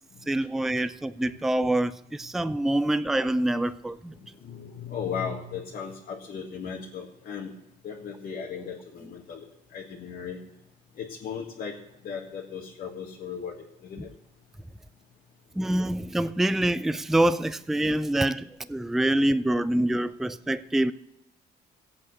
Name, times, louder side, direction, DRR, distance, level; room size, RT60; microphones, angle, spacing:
voice 1, 0.3-4.1 15.6-20.9, right 1 dB, ahead, 0.4 m, -25 dB
voice 2, 4.2-7.5 7.8-9.4 9.7-10.4 11.0-11.7 12.0-13.5 13.8-14.1, left 6 dB, 60° left, 1.8 m, -36 dB
16.0 x 8.5 x 6.4 m
cardioid pair, 110°, 17 cm